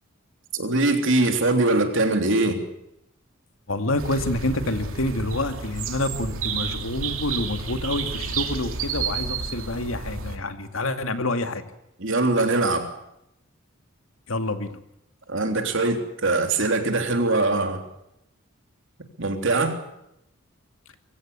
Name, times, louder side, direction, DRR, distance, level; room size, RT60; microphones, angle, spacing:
voice 1, 0.5-2.7 12.0-12.9 15.3-17.8 19.2-19.8, right 2 dB, 65° right, 5 dB, 3.4 m, -22 dB
voice 2, 3.7-11.6 14.3-14.8, left 2 dB, 80° left, 7 dB, 2.3 m, -27 dB
sound 1, 4.0-10.4, right 5 dB, 80° right, 2.5 m, -31 dB
23.5 x 16.5 x 8.3 m, 0.82 s
head